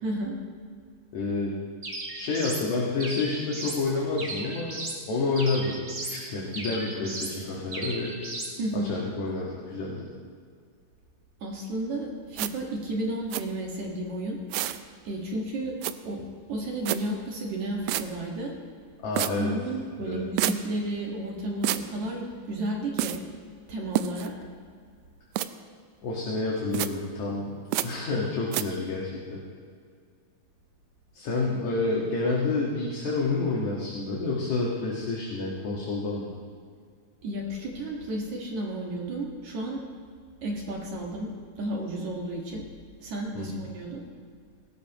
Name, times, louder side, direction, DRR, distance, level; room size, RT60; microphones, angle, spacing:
voice 1, 0.0-0.3 8.6-8.9 11.4-14.4 15.0-15.7 16.1-16.2 16.5-18.5 19.4-23.2 23.7-24.3 37.2-39.8 40.4-41.3 41.6-42.6 43.0-44.0, right 1 dB, 60° right, -1 dB, 3.0 m, -32 dB
voice 2, 1.1-1.5 2.1-4.8 5.1-5.8 6.1-8.2 8.7-10.1 19.0-19.5 20.0-20.2 26.0-29.4 31.1-36.3 43.3-43.6, left 3 dB, 60° left, -4 dB, 2.9 m, -29 dB
sound 1, 1.8-2.7 3.0-3.8 4.2-5.0 5.4-6.2 6.5-7.4 7.7-8.5, right 2 dB, 30° right, 1.9 m, -36 dB
sound 2, 12.4-12.5 13.3-13.4 14.5-14.8 15.8-15.9 16.9-17.0 17.9-18.0 19.2-19.3 20.4-20.6 21.6-21.8 23.0-23.2 24.0-24.3 25.4-25.5 26.7-26.9 27.7-27.9 28.5-28.6, right 14 dB, 80° right, 1.7 m, -27 dB
19.0 x 17.0 x 3.1 m, 2.1 s
omnidirectional pair, 3.9 m